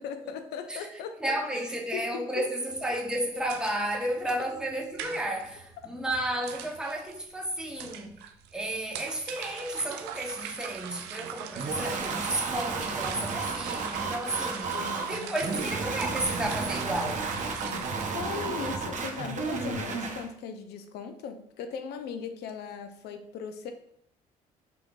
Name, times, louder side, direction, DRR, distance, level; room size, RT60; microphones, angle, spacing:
voice 1, 0.0-1.6 1.9-2.5 4.4-4.5 5.8-6.0 14.7-15.5 17.6-23.7, left 6 dB, 70° left, 0.6 m, -39 dB
voice 2, 1.2-8.1 8.5-14.8 15.1-17.3, right 1 dB, 5° right, 1.0 m, -32 dB
sound 1, 2.7-18.1, right 8 dB, 75° right, 0.5 m, -42 dB
sound 2, 11.6-20.3, right 4 dB, 45° right, 0.8 m, -33 dB
5.0 x 3.4 x 2.4 m
hypercardioid pair, 55°, 18 cm